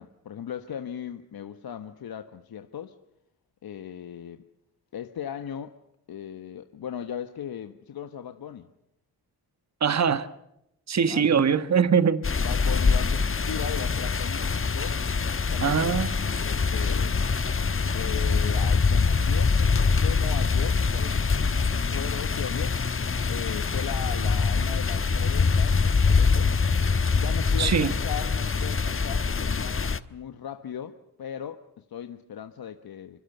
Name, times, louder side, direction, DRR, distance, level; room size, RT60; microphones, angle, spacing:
voice 1, 0.0-3.0 3.6-4.4 4.9-5.8 6.1-8.7 11.1-11.4 12.4-15.0 15.4-16.0 16.4-17.1 17.9-22.8 23.3-26.6 27.2-33.2, left 9 dB, 65° left, 1.3 m, -38 dB
voice 2, 9.8-10.3 10.9-12.2 15.6-16.1 27.6-27.9, right 6 dB, 40° right, 1.3 m, -22 dB
sound 1, 12.2-30.0, left 4 dB, 35° left, 1.2 m, -24 dB
25.5 x 24.5 x 6.8 m
supercardioid pair, 45°, 39 cm